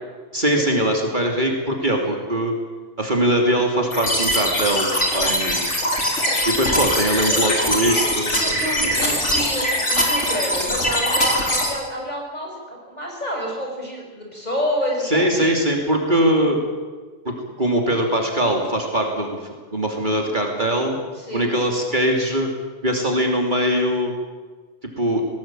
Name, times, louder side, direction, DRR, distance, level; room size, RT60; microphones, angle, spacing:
voice 1, 0.3-2.5 3.0-5.7 6.5-8.3 15.0-16.6 17.2-21.0 21.3-22.5 22.8-24.1 25.0-25.2, right 1 dB, 40° right, 1 dB, 3.1 m, -21 dB
sound 1, 3.9-11.7, equal, 70° left, 4.2 m, -22 dB
voice 2, 7.3-8.0 8.4-15.6 16.4-16.5 21.1-21.5, equal, 35° left, -1 dB, 6.6 m, -29 dB
19.5 x 19.0 x 9.0 m, 1.4 s
omnidirectional pair, 1.3 m